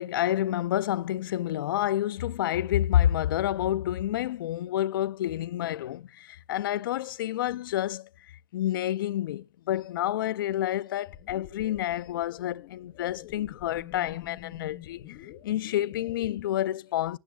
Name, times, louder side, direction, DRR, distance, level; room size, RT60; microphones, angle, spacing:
voice 1, 0.0-8.1 8.5-15.2 15.4-17.2, left 12 dB, 65° left, 0.4 m, -29 dB
sound 1, 11.1-16.4, left 13 dB, 35° left, 0.7 m, -47 dB
18.5 x 7.1 x 2.3 m
supercardioid pair, 175°, 12 cm